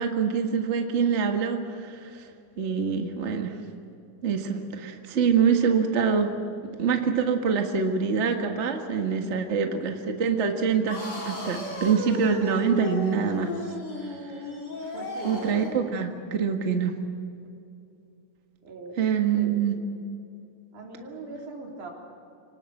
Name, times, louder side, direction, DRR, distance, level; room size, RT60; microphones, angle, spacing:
voice 1, 0.0-2.2 2.6-3.6 4.2-6.3 6.8-11.0 11.2-13.5 15.2-17.0 19.0-19.8, right 6 dB, 40° right, 4 dB, 0.9 m, -25 dB
voice 2, 9.3-9.8 14.9-15.4 18.6-19.6 20.7-21.9, right 3 dB, 65° right, 0 dB, 4.9 m, -41 dB
sound 1, 10.9-15.8, left 1 dB, 30° left, 4.4 m, -34 dB
25.0 x 19.0 x 7.8 m, 2.6 s
omnidirectional pair, 3.9 m